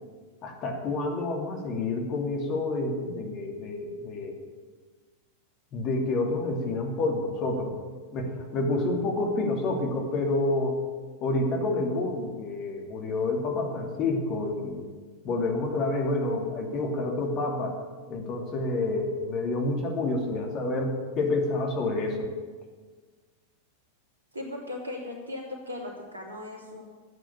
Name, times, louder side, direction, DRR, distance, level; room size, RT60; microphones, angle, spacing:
voice 1, 0.4-4.3 5.7-7.7 8.1-10.8 11.2-14.9 15.2-17.7 18.1-22.3, left 2 dB, 35° left, 2 dB, 2.7 m, -28 dB
voice 2, 24.3-26.8, left 2 dB, 75° right, 0 dB, 3.2 m, -37 dB
13.0 x 9.0 x 8.6 m, 1.4 s
figure-of-eight pair, 90°, 0 cm